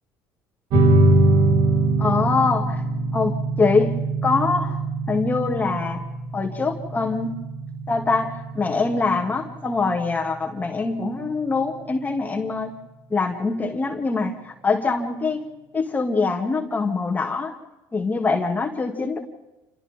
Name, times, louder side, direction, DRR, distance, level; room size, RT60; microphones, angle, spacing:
sound 1, 0.7-11.7, right 2 dB, 60° right, 3.2 m, -23 dB
voice 1, 2.0-2.8 3.1-4.8 5.1-6.0 6.3-7.3 7.9-12.7 13.1-15.5 15.7-17.5 17.9-19.2, left 4 dB, 20° left, 2 dB, 2.6 m, -24 dB
29.5 x 27.0 x 3.8 m, 1.0 s
supercardioid pair, 105°, 8 cm